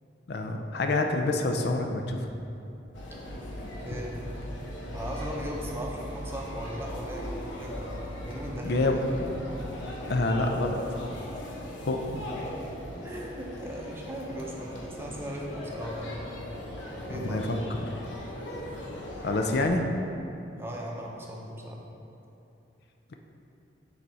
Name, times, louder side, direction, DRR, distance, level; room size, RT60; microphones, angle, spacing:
voice 1, 0.3-2.2 8.6-9.0 10.1-10.8 11.9-12.2 17.1-17.6 17.9-18.0 19.2-19.9, left 2 dB, 60° left, 4 dB, 0.5 m, -27 dB
sound 1, 2.9-19.7, left 1 dB, 90° left, 1.1 m, -38 dB
voice 2, 3.7-4.4 4.8-9.1 11.3-11.4 13.0-16.2 17.1-17.5 20.6-21.8, equal, 15° right, -2 dB, 0.7 m, -38 dB
7.1 x 4.1 x 4.7 m, 2.7 s
head